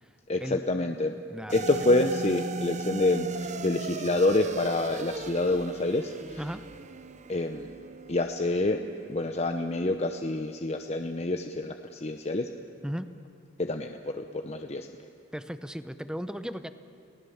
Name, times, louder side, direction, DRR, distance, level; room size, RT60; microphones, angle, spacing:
voice 1, 0.3-1.1 1.5-6.4 7.3-7.7 8.1-8.8 9.1-12.5 13.6-14.9, left 2 dB, 35° left, 5 dB, 0.8 m, -27 dB
sound 1, 1.5-10.0, right 3 dB, 40° right, 0.6 m, -38 dB
voice 2, 15.3-16.7, equal, 5° right, 11 dB, 0.8 m, -36 dB
29.5 x 19.0 x 7.2 m, 2.4 s
head